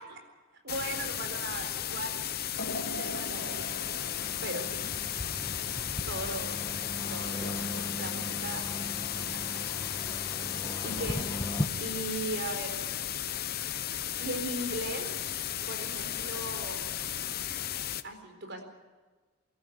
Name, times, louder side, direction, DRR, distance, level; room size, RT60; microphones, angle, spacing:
voice 1, 0.6-2.2 3.0-4.1 4.4-4.9 6.1-6.6 7.0-8.6 9.1-10.4 10.8-11.3 11.8-13.0 14.2-15.1 15.7-16.8 18.0-18.6, right 2 dB, 55° right, 5 dB, 4.2 m, -38 dB
sound 1, 0.7-18.0, left 11 dB, 45° left, 0.8 m, -35 dB
sound 2, 2.6-5.7 6.2-6.3 7.3-7.4, left 1 dB, 65° left, 1.8 m, -41 dB
sound 3, 3.3-11.7, left 1 dB, 20° left, 1.3 m, -38 dB
23.5 x 14.0 x 9.8 m, 1.3 s
head